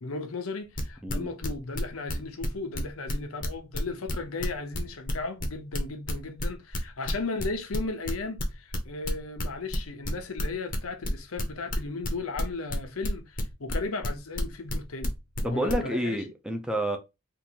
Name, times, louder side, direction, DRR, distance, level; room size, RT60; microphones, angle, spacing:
voice 1, 0.0-15.1 15.4-16.2, left 3 dB, 85° left, 0.7 m, -36 dB
sound 1, 0.8-2.5 2.7-6.8 7.1-10.8 11.0-15.7, left 1 dB, 40° left, 0.7 m, -32 dB
voice 2, 15.4-17.0, right 1 dB, 5° right, 0.5 m, -29 dB
3.7 x 2.6 x 2.8 m
head